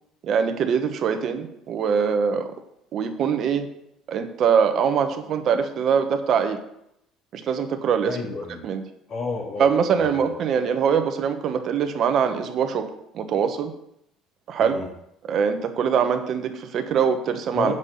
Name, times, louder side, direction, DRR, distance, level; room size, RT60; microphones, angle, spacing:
voice 1, 0.2-2.5 2.9-3.7 4.1-6.6 7.3-8.2 8.6-8.8 9.6-12.9 13.1-13.7 14.5-14.8 15.3-17.7, right 7 dB, 55° right, 7 dB, 1.3 m, -23 dB
voice 2, 8.0-8.7 9.1-10.3 14.6-14.9 17.5-17.7, left 4 dB, 50° left, 0 dB, 2.7 m, -31 dB
8.3 x 5.6 x 7.0 m, 0.77 s
supercardioid pair, 100°, 0 cm